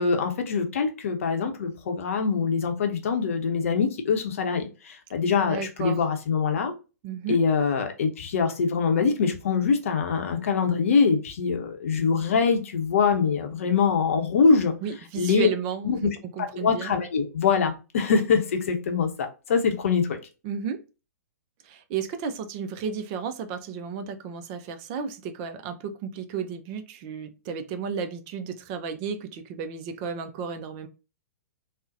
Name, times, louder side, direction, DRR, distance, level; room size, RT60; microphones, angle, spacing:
voice 1, 0.0-6.7 7.3-14.7 15.2-15.5 15.8-16.1 16.4-20.2, left 5 dB, 55° left, 0.7 m, -24 dB
voice 2, 5.5-6.0 7.0-7.4 14.8-16.9 20.4-20.8 21.7-30.9, right 6 dB, 30° right, 0.4 m, -33 dB
3.7 x 2.1 x 2.6 m
figure-of-eight pair, 115°, 9 cm